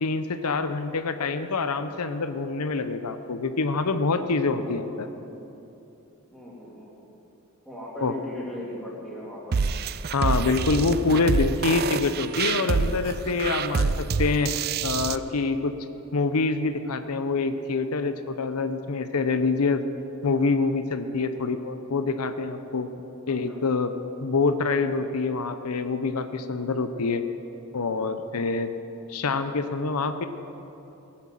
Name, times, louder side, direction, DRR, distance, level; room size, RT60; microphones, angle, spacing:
voice 1, 0.0-5.1 8.0-8.1 10.1-14.5 14.8-15.7 16.1-19.8 20.2-22.9 23.3-23.9 24.2-27.2 27.7-28.7 29.1-30.3, left 4 dB, 85° left, 10 dB, 0.7 m, -26 dB
voice 2, 4.6-5.0 6.3-6.9 7.6-9.7 21.3-21.7 23.3-23.6, left 1 dB, ahead, -5 dB, 3.1 m, -39 dB
sound 1, 9.5-15.2, right 5 dB, 45° right, 0.4 m, -27 dB
18.0 x 8.9 x 7.5 m, 3.0 s
head